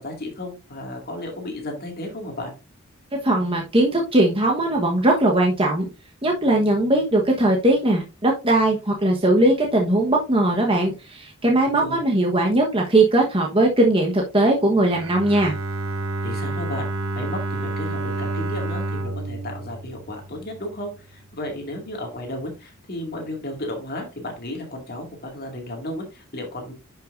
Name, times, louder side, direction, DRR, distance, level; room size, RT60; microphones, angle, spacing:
voice 1, 0.0-2.5 11.7-12.0 16.2-16.8 17.2-26.7, left 1 dB, 45° left, 1 dB, 2.3 m, -33 dB
voice 2, 3.2-5.9 6.2-15.5, right 1 dB, 25° right, 0 dB, 1.2 m, -19 dB
Bowed string instrument, 14.9-20.9, right 2 dB, 70° right, 0.8 m, -29 dB
10.5 x 5.6 x 2.6 m, 0.27 s
head